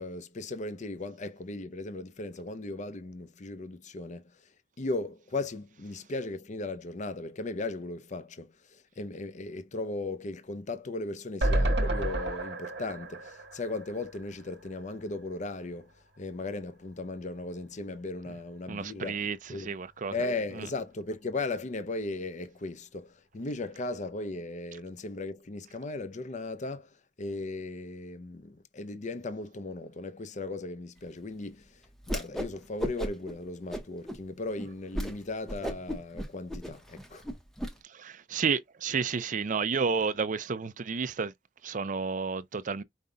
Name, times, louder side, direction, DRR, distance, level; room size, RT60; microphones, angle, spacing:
voice 1, 0.0-4.5 4.8-15.9 16.2-19.2 19.5-19.7 20.1-37.3, left 2 dB, 45° left, 0.6 m, -37 dB
sound 1, 11.4-14.6 15.0-15.1 15.3-15.4, right 1 dB, 85° right, 1.3 m, -30 dB
voice 2, 18.7-20.1 37.9-41.3 41.6-42.8, right 5 dB, 50° right, 0.5 m, -31 dB
Whoosh swoosh swish, 32.0-32.5 32.8-33.3 33.7-34.2 34.6-34.7 34.9-35.1 35.5-37.7, equal, 5° left, 0.8 m, -34 dB
5.3 x 2.2 x 3.8 m
head